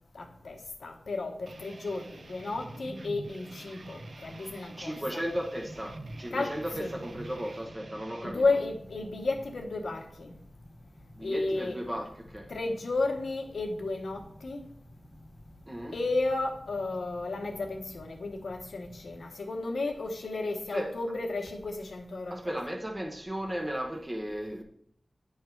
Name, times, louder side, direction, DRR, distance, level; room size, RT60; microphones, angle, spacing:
voice 1, 0.1-5.2 6.3-6.5 6.8-6.9 8.2-10.3 11.2-11.8 12.5-14.7 15.9-22.5, left 3 dB, 85° left, 1.0 m, -33 dB
sound 1, 1.5-8.3, right 2 dB, 75° right, 0.6 m, -46 dB
voice 2, 4.7-8.6 11.2-12.5 15.7-16.0 20.7-20.9 22.3-24.6, equal, 25° right, 1.0 m, -35 dB
sound 2, 5.2-19.2, left 1 dB, 30° left, 0.9 m, -52 dB
9.4 x 3.2 x 4.5 m
cardioid pair, 40°, 0 cm